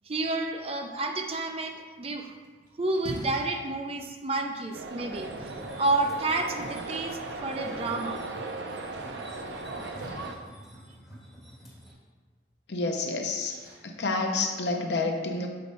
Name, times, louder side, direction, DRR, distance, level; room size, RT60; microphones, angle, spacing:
voice 1, 0.1-2.3 2.8-5.3 5.8-8.2, right 2 dB, 30° right, 4 dB, 0.5 m, -30 dB
Splash splatter, 2.0-15.0, equal, 50° right, 1.6 m, -49 dB
sound 1, 4.7-10.4, right 3 dB, 75° right, 0.6 m, -37 dB
sound 2, 5.1-11.9, equal, ahead, 1.9 m, -48 dB
voice 2, 12.7-13.5 13.8-15.5, left 3 dB, 65° left, 2 dB, 0.8 m, -29 dB
7.7 x 3.1 x 5.3 m, 1.4 s
head